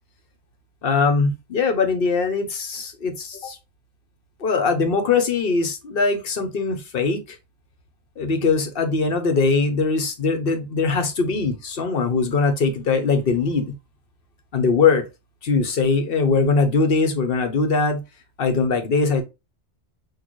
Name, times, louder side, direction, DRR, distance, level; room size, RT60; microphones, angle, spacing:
voice 1, 0.8-3.6 4.4-7.2 8.2-13.7 14.5-15.0 15.4-18.0 18.4-19.2, left 4 dB, 60° left, 1.0 m, -21 dB
6.3 x 2.4 x 3.0 m
omnidirectional pair, 1.1 m